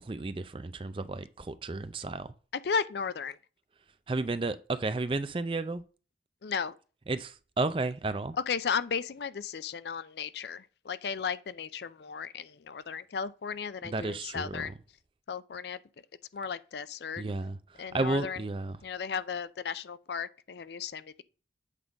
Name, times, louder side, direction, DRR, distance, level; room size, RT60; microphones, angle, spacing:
voice 1, 0.0-2.3 4.1-5.8 7.1-8.3 13.8-14.7 17.2-17.6 17.9-18.8, right 3 dB, 30° right, 0.4 m, -32 dB
voice 2, 2.5-3.4 6.4-6.7 8.5-14.7 15.3-15.8 16.3-17.2 17.8-18.4 18.8-21.2, left 6 dB, 75° left, 0.5 m, -35 dB
8.2 x 3.7 x 5.1 m
head